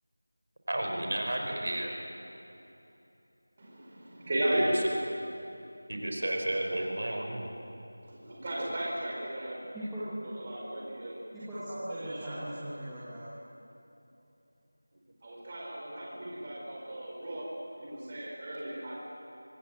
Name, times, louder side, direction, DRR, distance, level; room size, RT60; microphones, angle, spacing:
voice 1, 0.7-1.9 6.0-7.5, right 1 dB, 45° right, 2 dB, 4.4 m, -32 dB
voice 2, 3.6-4.8 8.0-9.6 10.2-11.2 11.9-12.4 15.2-19.0, right 1 dB, 20° right, -4 dB, 4.7 m, -35 dB
voice 3, 9.7-10.1 11.3-13.3, right 1 dB, ahead, -16 dB, 1.8 m, -39 dB
25.0 x 20.0 x 7.8 m, 2.9 s
figure-of-eight pair, 180°, 0 cm